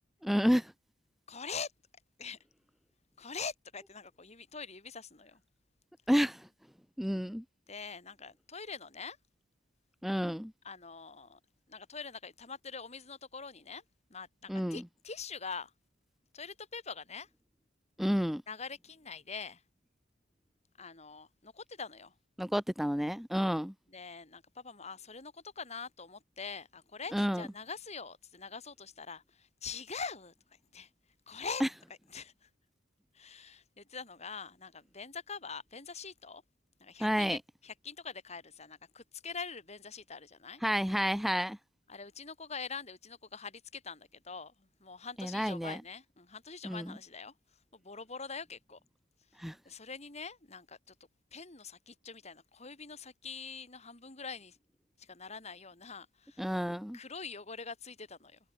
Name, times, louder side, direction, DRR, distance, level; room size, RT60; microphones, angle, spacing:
voice 1, 0.2-0.7 6.1-6.4 7.0-7.4 10.0-10.5 14.5-14.8 18.0-18.4 22.4-23.7 27.1-27.4 31.6-31.7 37.0-37.4 40.6-41.6 45.2-45.8 46.6-47.0 49.4-49.5 56.4-57.0, equal, ahead, 0.6 m, -30 dB
voice 2, 1.3-1.7 2.2-2.4 3.2-5.4 7.7-9.2 10.6-11.4 11.7-13.8 14.1-15.7 16.3-17.3 18.5-19.6 20.8-22.1 23.9-30.3 30.7-30.9 31.3-31.6 32.1-32.5 33.1-36.4 36.8-40.6 41.9-47.3 47.7-48.8 49.6-50.9 51.3-54.6 55.0-56.5 56.9-58.4, left 5 dB, 35° left, 3.4 m, -44 dB
head